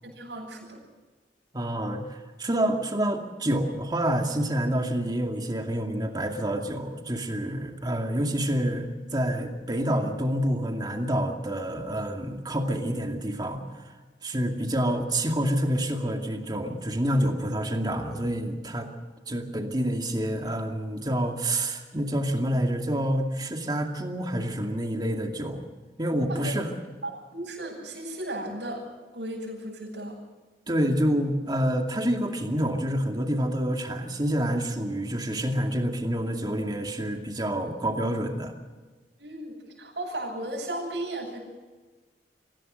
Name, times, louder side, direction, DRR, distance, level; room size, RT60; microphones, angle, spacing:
voice 1, 0.0-0.8 26.3-26.5 27.0-28.9 29.1-30.2 39.2-41.4, right 1 dB, 80° right, -4 dB, 7.8 m, -35 dB
voice 2, 1.5-13.9 14.2-18.9 19.3-25.6 26.0-26.7 30.7-38.5, right 1 dB, 25° right, 3 dB, 2.4 m, -28 dB
24.5 x 16.5 x 6.7 m, 1.3 s
head